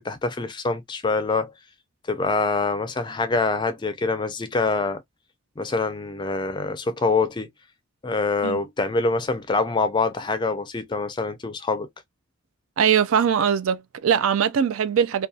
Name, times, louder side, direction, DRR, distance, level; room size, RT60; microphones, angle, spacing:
voice 1, 0.0-1.5 2.1-5.0 5.6-7.5 8.0-11.9, left 3 dB, 20° left, 0.4 m, -25 dB
voice 2, 12.8-15.3, right 8 dB, 80° right, 0.4 m, -21 dB
2.6 x 2.3 x 2.3 m
head